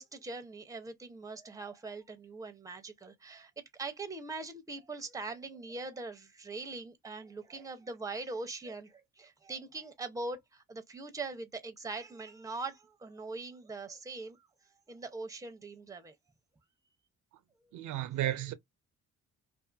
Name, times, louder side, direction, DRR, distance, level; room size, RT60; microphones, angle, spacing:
voice 1, 0.0-14.4 14.9-16.1, right 3 dB, 10° right, 0.6 m, -42 dB
voice 2, 17.7-18.5, right 13 dB, 75° right, 0.5 m, -33 dB
2.5 x 2.4 x 2.4 m
cardioid pair, 90°, 30 cm